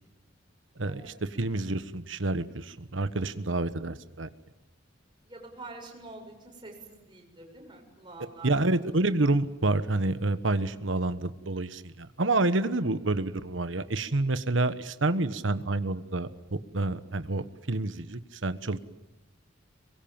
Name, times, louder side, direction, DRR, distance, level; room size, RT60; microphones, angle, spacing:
voice 1, 0.8-1.6 5.3-8.9, right 2 dB, 25° right, 0 dB, 7.2 m, -47 dB
voice 2, 1.4-4.3 8.4-16.3 16.7-18.8, right 2 dB, 75° right, 12 dB, 1.3 m, -28 dB
25.5 x 23.0 x 8.9 m, 0.96 s
head